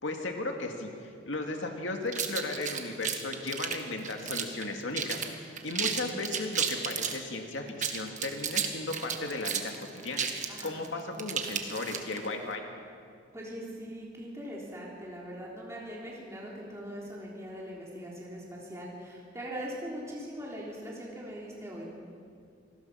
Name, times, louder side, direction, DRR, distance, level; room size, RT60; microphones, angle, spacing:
voice 1, 0.0-10.3 10.6-12.6, left 2 dB, 80° left, 3 dB, 2.2 m, -36 dB
sound 1, 2.1-4.6 4.9-5.3 5.6-7.2 7.7-12.3, right 7 dB, 40° right, 1.7 m, -32 dB
voice 2, 10.5-10.9 13.3-21.9, equal, 15° right, -4 dB, 3.5 m, -41 dB
27.5 x 19.5 x 5.8 m, 2.3 s
head